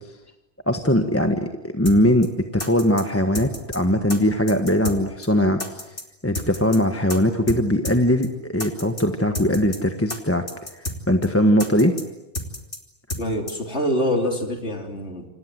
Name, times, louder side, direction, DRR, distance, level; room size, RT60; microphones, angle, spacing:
voice 1, 0.7-5.8 6.2-10.4 10.7-12.0, equal, 10° left, 5 dB, 1.5 m, -20 dB
sound 1, 1.9-2.0 2.2-2.3 2.6-3.0 3.3-3.8 4.1-4.2 4.5-5.0 5.2-5.3 5.6-6.0 6.3-6.8 7.1-7.2 7.5-7.6 7.8-8.0 8.2-8.3 8.6-9.0 9.3-9.8 10.1-10.2 10.5-11.0 11.2-11.3 11.6-12.0 12.3-12.8 13.1-13.2 13.5-13.6, left 1 dB, 55° left, 3.5 m, -30 dB
voice 2, 13.2-15.3, equal, 90° left, 3 dB, 4.0 m, -25 dB
29.0 x 26.5 x 7.8 m, 0.96 s
omnidirectional pair, 1.1 m